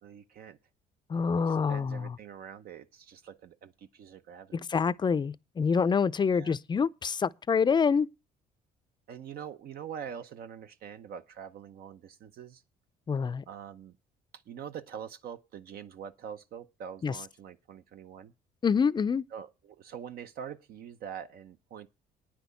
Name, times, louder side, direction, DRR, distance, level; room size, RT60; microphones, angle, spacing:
voice 1, 0.0-0.6 1.4-4.7 6.3-6.6 9.1-12.6 13.5-14.0 14.5-18.3 19.3-21.9, right 8 dB, 65° right, 0.9 m, -44 dB
voice 2, 1.1-2.2 4.5-8.1 13.1-13.4 17.0-17.1 18.6-19.3, left 6 dB, 25° left, 0.5 m, -26 dB
9.6 x 6.2 x 8.2 m
cardioid pair, 110°, 17 cm